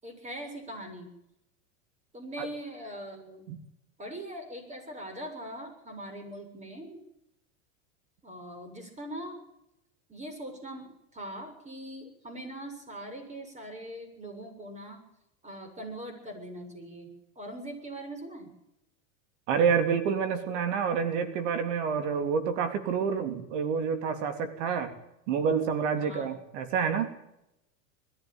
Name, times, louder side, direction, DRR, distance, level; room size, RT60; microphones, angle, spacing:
voice 1, 0.0-1.1 2.1-3.5 4.0-7.0 8.2-9.4 10.1-15.0 15.4-18.5 26.0-26.3, right 1 dB, 20° right, 5 dB, 7.4 m, -41 dB
voice 2, 19.5-25.0 25.3-27.2, right 6 dB, 70° right, 9 dB, 3.4 m, -28 dB
21.5 x 13.5 x 9.2 m, 0.83 s
hypercardioid pair, 110°, 38 cm